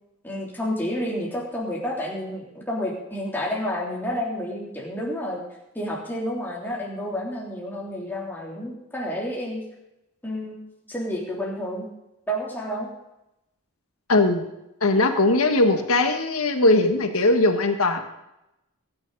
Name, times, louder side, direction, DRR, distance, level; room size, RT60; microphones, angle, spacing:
voice 1, 0.2-5.4 5.7-9.6 10.2-11.9 12.3-12.9, equal, 10° left, -4 dB, 3.3 m, -30 dB
voice 2, 14.1-14.5 14.8-18.0, left 2 dB, 75° left, 6 dB, 1.7 m, -20 dB
21.5 x 9.8 x 4.1 m, 0.90 s
head